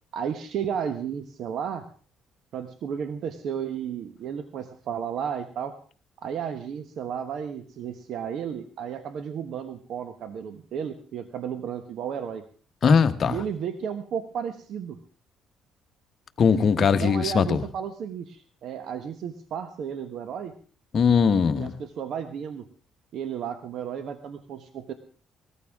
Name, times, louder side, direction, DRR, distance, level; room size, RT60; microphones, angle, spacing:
voice 1, 0.1-1.8 2.5-5.7 6.2-12.5 13.3-15.0 16.8-20.5 21.5-22.6 23.1-24.9, right 8 dB, 65° right, 8 dB, 1.2 m, -33 dB
voice 2, 12.8-13.3 16.4-17.6 20.9-21.7, left 6 dB, 45° left, 8 dB, 1.2 m, -20 dB
19.0 x 14.0 x 3.6 m, 0.41 s
cardioid pair, 100°, 0 cm